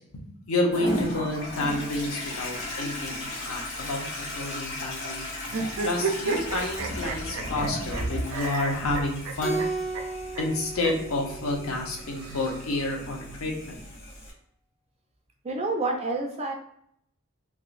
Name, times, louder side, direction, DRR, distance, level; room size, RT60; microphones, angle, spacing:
voice 1, 0.4-5.3 5.8-9.6 10.4-13.8, left 2 dB, 90° left, 0 dB, 0.9 m, -29 dB
Toilet flush, 0.7-14.3, left 1 dB, 60° left, 1.4 m, -36 dB
sound 1, 5.5-8.0 8.3-9.7 9.9-10.0 10.3-10.4 10.8-10.9 12.0-13.0, right 4 dB, 75° right, 0.6 m, -32 dB
Keyboard (musical), 9.4-12.0, right 3 dB, 40° left, 0.6 m, -34 dB
voice 2, 15.4-16.5, right 2 dB, 30° right, 2 dB, 0.4 m, -28 dB
3.5 x 2.5 x 2.5 m, 0.69 s
head